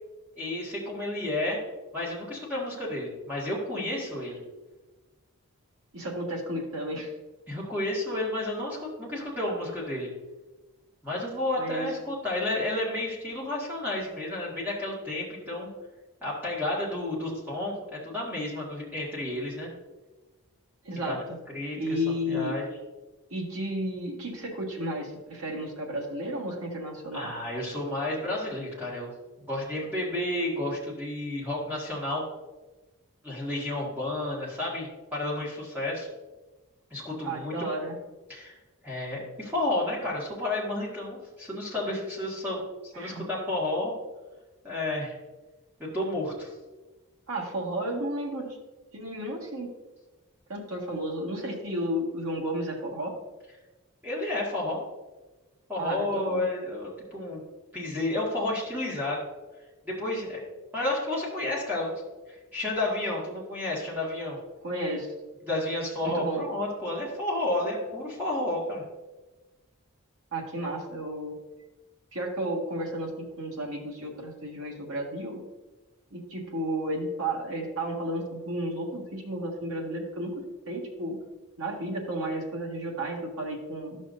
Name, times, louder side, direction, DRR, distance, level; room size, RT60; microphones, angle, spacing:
voice 1, 0.4-1.6 1.9-4.4 7.5-10.1 11.0-15.7 16.2-19.7 21.1-21.2 21.5-22.0 22.3-22.6 27.1-29.1 29.5-32.2 33.2-36.1 36.9-37.7 38.3-38.5 38.8-43.9 44.6-45.2 45.9-46.5 54.0-54.8 55.7-57.4 57.7-59.2 59.8-60.4 60.7-61.9 62.5-64.4 65.4-68.8, left 1 dB, 10° right, -5 dB, 1.9 m, -31 dB
voice 2, 5.9-7.1 11.6-11.9 20.8-21.4 21.7-22.5 23.3-27.3 37.2-38.0 42.9-43.2 47.3-48.6 48.9-49.7 50.5-53.2 55.8-56.4 64.6-65.1 66.0-66.4 70.3-71.3 72.1-75.4 76.1-81.2 81.6-84.0, right 1 dB, 80° right, 0 dB, 1.7 m, -33 dB
12.0 x 6.3 x 2.7 m, 1.1 s
head